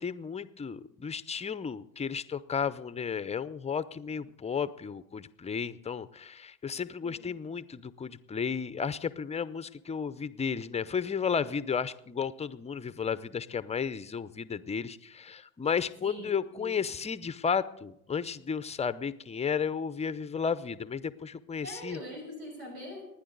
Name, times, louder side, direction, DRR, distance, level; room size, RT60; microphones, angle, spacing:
voice 1, 0.0-22.0, left 6 dB, 15° left, 15 dB, 0.6 m, -33 dB
voice 2, 16.0-16.8 21.6-23.1, left 1 dB, 85° right, 0 dB, 6.0 m, -43 dB
27.5 x 9.9 x 4.0 m, 0.82 s
hypercardioid pair, 80°, 43 cm